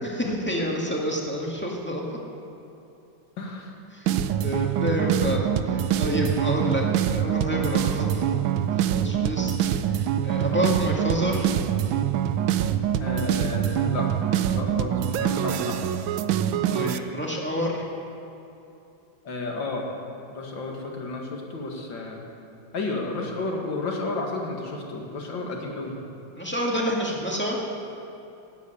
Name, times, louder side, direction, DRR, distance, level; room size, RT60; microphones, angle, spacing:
voice 1, 0.0-2.2 3.9-4.1 4.4-6.8 7.1-8.4 8.8-9.5 9.9-11.5 16.7-17.8 26.4-27.6, equal, 5° left, -2 dB, 1.9 m, -28 dB
voice 2, 3.4-3.7 13.0-14.1 14.5-15.8 19.2-19.9 20.3-22.2 22.7-26.0, left 3 dB, 70° left, 0 dB, 2.7 m, -32 dB
sound 1, 4.1-17.0, right 10 dB, 90° right, 1.4 m, -25 dB
16.0 x 8.3 x 9.8 m, 2.8 s
omnidirectional pair, 2.1 m